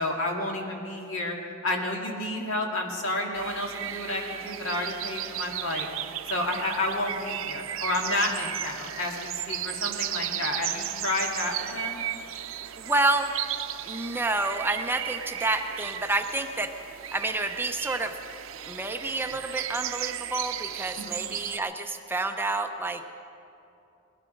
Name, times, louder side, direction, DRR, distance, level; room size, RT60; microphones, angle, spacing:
voice 1, 0.0-1.3 1.6-5.9 6.3-12.0 21.0-21.2, left 1 dB, 75° left, 1 dB, 2.0 m, -30 dB
sound 1, 3.3-21.6, right 11 dB, 70° right, 0.5 m, -35 dB
voice 2, 12.8-13.3 13.9-16.7 17.1-18.2 18.7-23.0, right 2 dB, 10° right, 6 dB, 0.5 m, -29 dB
19.5 x 12.0 x 5.2 m, 2.7 s
head